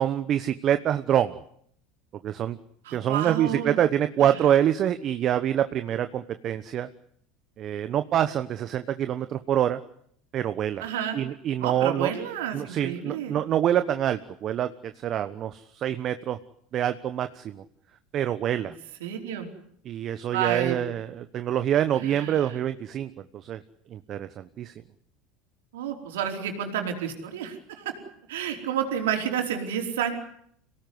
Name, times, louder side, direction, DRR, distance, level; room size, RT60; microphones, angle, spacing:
voice 1, 0.0-1.4 2.2-2.6 2.9-6.9 7.6-9.8 10.3-10.9 11.1-12.1 12.5-16.4 16.7-17.6 18.1-18.7 19.8-23.6 23.9-24.7, right 10 dB, 45° right, 10 dB, 1.1 m, -26 dB
voice 2, 2.8-3.8 4.2-4.5 10.8-11.2 11.6-13.4 18.6-18.7 19.0-19.5 20.3-20.8 22.0-22.6 25.7-27.9 28.3-30.1, right 9 dB, 85° right, 3 dB, 4.7 m, -30 dB
26.0 x 18.0 x 9.6 m, 0.68 s
supercardioid pair, 95°, 0 cm